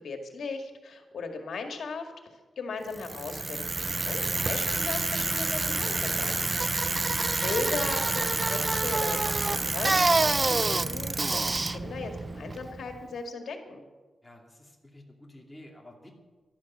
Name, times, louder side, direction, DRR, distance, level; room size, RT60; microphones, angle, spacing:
voice 1, 0.0-2.1 2.6-6.6 6.8-7.1 7.4-13.8, left 4 dB, 75° left, 5 dB, 2.0 m, -37 dB
Bicycle, 2.9-13.0, right 3 dB, 25° right, 0.4 m, -28 dB
voice 2, 6.6-7.2 14.2-16.1, left 1 dB, 5° left, -1 dB, 2.6 m, -51 dB
16.0 x 12.0 x 7.4 m, 1.3 s
wide cardioid pair, 150°, 0 cm